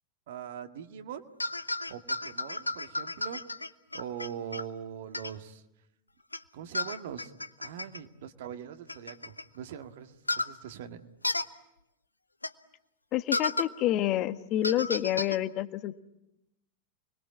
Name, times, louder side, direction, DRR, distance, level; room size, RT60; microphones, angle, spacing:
voice 1, 0.3-1.2 1.9-3.4 3.9-5.6 6.5-7.3 7.6-11.0, right 9 dB, 55° right, 7 dB, 1.9 m, -42 dB
sound 1, 1.4-4.6 5.1-5.3 6.3-6.4 6.7-8.0 8.9-9.4 10.3-10.5 11.2-11.4 12.4-12.5 13.3-13.7 14.6-15.4, left 2 dB, 85° left, 1.0 m, -32 dB
voice 2, 13.1-15.9, left 13 dB, 40° left, 11 dB, 1.3 m, -28 dB
29.0 x 22.0 x 8.6 m, 0.86 s
figure-of-eight pair, 90°, 0 cm